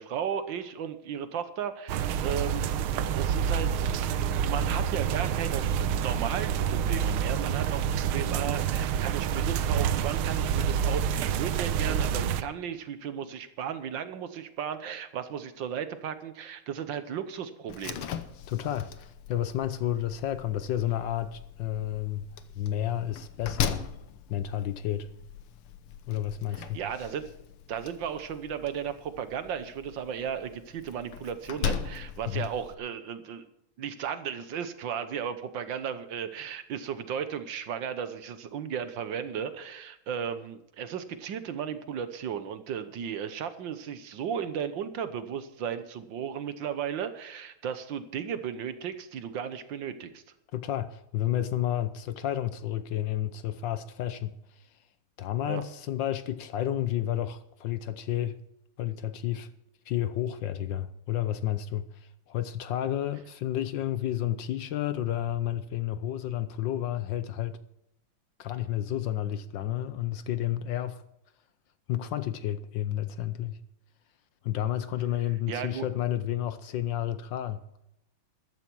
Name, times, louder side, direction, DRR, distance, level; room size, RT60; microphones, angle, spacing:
voice 1, 0.0-18.1 26.7-27.3 27.7-33.4 33.8-50.2 55.5-55.6 75.5-75.9, right 8 dB, 65° right, 1.6 m, -35 dB
Light rain in house, 1.9-12.4, right 8 dB, 90° right, 1.6 m, -28 dB
Slam, 17.7-32.7, left 8 dB, 90° left, 1.9 m, -39 dB
voice 2, 18.5-22.3 22.6-23.9 24.3-25.1 26.1-26.8 32.3-32.5 50.5-54.7 55.2-58.4 58.8-59.5 59.9-67.6 68.4-71.0 71.9-73.6 74.4-77.6, left 12 dB, 70° left, 1.3 m, -31 dB
14.0 x 12.5 x 4.6 m
omnidirectional pair, 2.3 m